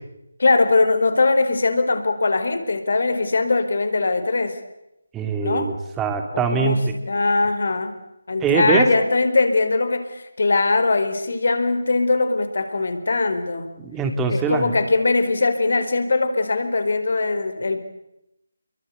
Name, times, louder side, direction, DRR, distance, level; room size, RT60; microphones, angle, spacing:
voice 1, 0.4-4.6 5.4-5.7 6.3-8.0 8.3-13.7 14.3-17.8, left 3 dB, 60° left, 9 dB, 4.3 m, -21 dB
voice 2, 5.1-6.8 8.4-8.9 13.8-14.7, right 5 dB, 10° right, 5 dB, 2.9 m, -22 dB
29.0 x 23.0 x 8.1 m, 0.87 s
figure-of-eight pair, 155°, 0 cm